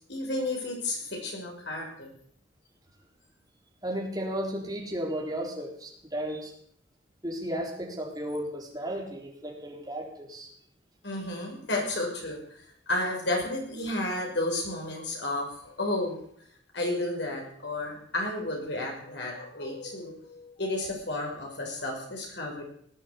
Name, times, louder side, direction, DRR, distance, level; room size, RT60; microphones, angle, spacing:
voice 1, 0.1-2.1 11.0-16.2 16.7-22.6, left 2 dB, 70° left, 0 dB, 6.1 m, -32 dB
voice 2, 3.8-6.5 7.2-10.5, equal, 20° right, -1 dB, 3.9 m, -34 dB
19.0 x 8.9 x 8.3 m, 0.64 s
head